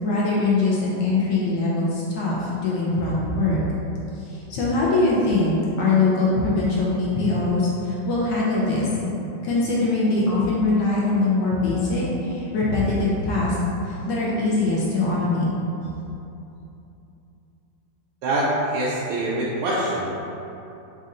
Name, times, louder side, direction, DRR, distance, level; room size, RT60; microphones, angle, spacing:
voice 1, 0.0-3.6 4.2-9.1 9.4-13.6 13.8-15.5, left 2 dB, 70° left, -6 dB, 1.1 m, -22 dB
voice 2, 18.2-20.1, right 1 dB, 85° right, -7 dB, 1.5 m, -24 dB
4.2 x 2.5 x 3.7 m, 2.8 s
omnidirectional pair, 2.4 m